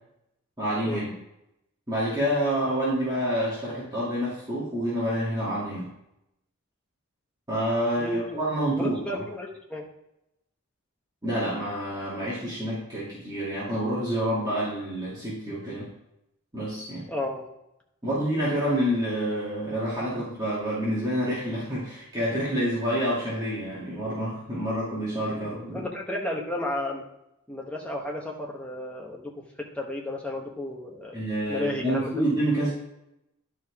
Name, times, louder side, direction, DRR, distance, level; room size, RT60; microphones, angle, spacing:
voice 1, 0.6-1.1 1.9-5.9 7.5-9.2 11.2-15.9 16.5-17.1 18.0-25.8 31.1-32.7, equal, 20° right, -9 dB, 2.4 m, -28 dB
voice 2, 8.0-8.4 8.7-9.9 17.1-17.4 25.7-27.0 27.5-31.1 31.5-32.2, left 1 dB, 5° left, -1 dB, 1.1 m, -33 dB
11.0 x 4.9 x 3.6 m, 0.83 s
head